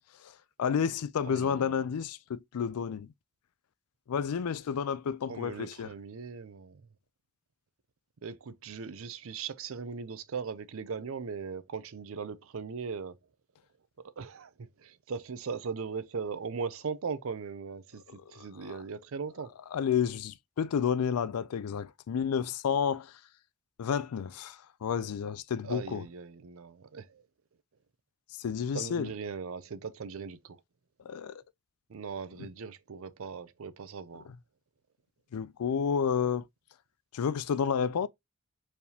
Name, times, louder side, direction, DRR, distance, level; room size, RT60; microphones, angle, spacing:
voice 1, 0.6-3.1 4.1-5.9 18.6-18.8 19.7-23.1 23.8-26.0 28.4-29.1 31.1-31.4 35.3-36.4 37.1-38.1, left 7 dB, 85° left, 0.4 m, -30 dB
voice 2, 1.3-1.8 5.3-6.8 8.2-13.2 14.2-18.0 18.3-19.5 25.6-27.2 28.7-30.6 31.9-34.3, right 5 dB, 65° right, 0.5 m, -39 dB
4.6 x 3.4 x 2.8 m
head